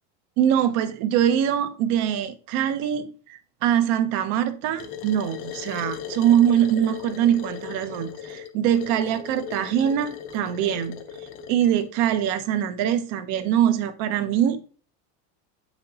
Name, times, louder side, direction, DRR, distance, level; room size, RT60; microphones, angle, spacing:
voice 1, 0.4-11.0 11.5-14.7, right 10 dB, 50° right, 0.7 m, -23 dB
sound 1, 4.8-11.9, left 8 dB, 35° left, 0.7 m, -38 dB
7.7 x 5.8 x 2.8 m
cardioid pair, 175°, 36 cm